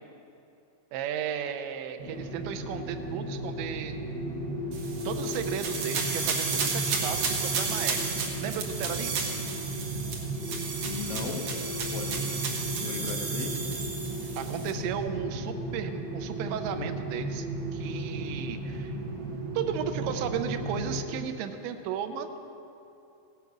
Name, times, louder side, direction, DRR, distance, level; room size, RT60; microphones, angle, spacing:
voice 1, 0.9-4.0 5.1-8.0 8.4-9.3 14.4-17.5 17.7-19.0 19.5-22.4, right 8 dB, 85° right, 7 dB, 2.9 m, -34 dB
sound 1, 2.0-21.0, right 1 dB, 25° right, 2.5 m, -35 dB
sound 2, 4.7-14.7, right 5 dB, 65° right, 1.8 m, -33 dB
voice 2, 10.8-11.5 11.9-12.4 12.8-13.6, left 5 dB, 85° left, 2 dB, 3.6 m, -37 dB
16.5 x 9.3 x 6.0 m, 2.7 s
omnidirectional pair, 5.3 m